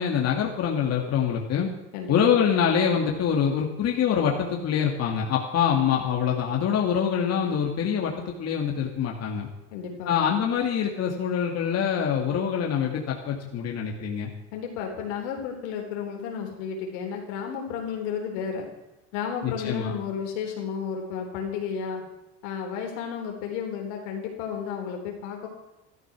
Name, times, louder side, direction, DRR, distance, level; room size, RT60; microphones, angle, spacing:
voice 1, 0.0-1.7 2.1-9.5 10.1-14.3 19.4-19.9, left 8 dB, 45° left, 0 dB, 2.3 m, -25 dB
voice 2, 1.9-2.4 9.7-10.2 14.5-18.7 19.1-22.0 22.4-25.5, left 7 dB, 80° left, 2 dB, 3.9 m, -32 dB
13.5 x 12.5 x 6.1 m, 0.96 s
supercardioid pair, 100°, 35 cm